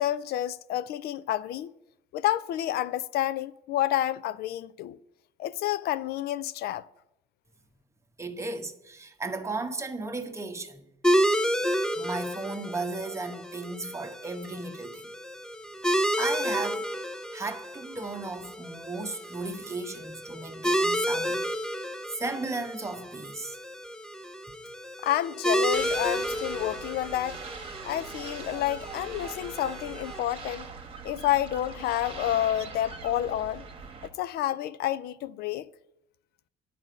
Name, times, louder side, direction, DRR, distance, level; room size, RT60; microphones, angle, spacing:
voice 1, 0.0-1.7 2.1-5.0 5.4-6.8 25.0-27.4 27.8-30.7 31.0-33.6 34.0-35.7, left 12 dB, 70° left, 0.4 m, -29 dB
voice 2, 8.2-10.8 12.0-15.1 15.8-16.8 17.3-21.7 22.2-23.6, right 3 dB, 15° right, 1.0 m, -35 dB
sound 1, 11.0-30.2, equal, 5° left, 0.6 m, -31 dB
sound 2, 25.7-34.1, right 5 dB, 35° right, 1.3 m, -42 dB
9.4 x 5.1 x 7.6 m
cardioid pair, 110°, 17 cm